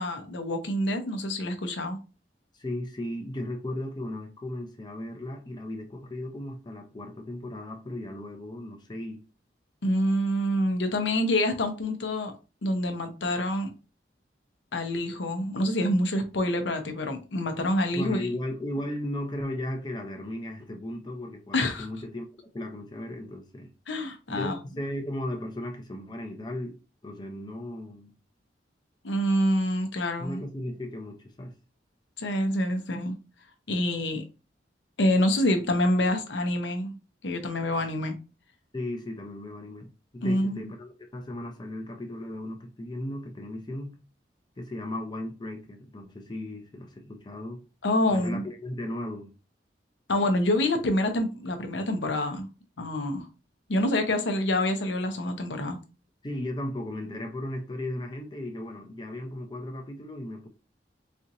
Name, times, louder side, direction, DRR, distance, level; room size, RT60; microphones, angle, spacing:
voice 1, 0.0-2.0 9.8-12.3 12.6-13.7 14.7-18.3 21.5-21.9 23.9-24.6 29.0-30.4 32.2-33.1 33.7-34.2 35.0-37.0 37.2-38.1 40.2-40.7 47.8-48.4 50.1-52.5 52.8-53.3 53.7-55.8, left 1 dB, 80° left, 0.7 m, -26 dB
voice 2, 2.5-9.2 17.9-22.3 22.5-23.7 24.3-26.8 27.0-28.1 30.2-31.5 38.7-44.0 44.6-47.6 48.1-49.3 56.2-60.5, left 1 dB, 25° left, 0.5 m, -36 dB
4.3 x 2.8 x 2.5 m
head